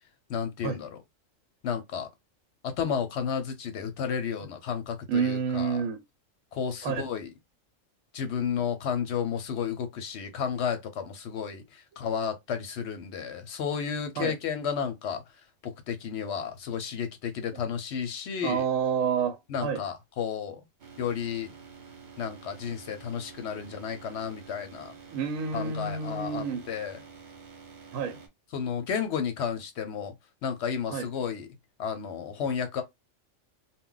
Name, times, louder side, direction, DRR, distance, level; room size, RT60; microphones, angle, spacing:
voice 1, 0.3-1.0 1.6-2.1 2.6-5.8 6.5-7.3 8.1-15.2 15.6-18.6 19.5-20.6 21.0-21.5 22.2-25.0 25.5-27.0 28.5-30.1 30.4-31.5 31.8-32.8, left 7 dB, 65° left, 0.8 m, -32 dB
voice 2, 5.1-6.0 6.8-7.1 14.2-14.3 17.5-17.6 18.4-19.8 25.1-26.7 27.9-28.2 30.9-31.1, right 6 dB, 85° right, 1.0 m, -29 dB
sound 1, 20.8-28.3, right 5 dB, 50° right, 0.6 m, -49 dB
2.2 x 2.1 x 3.7 m
omnidirectional pair, 1.4 m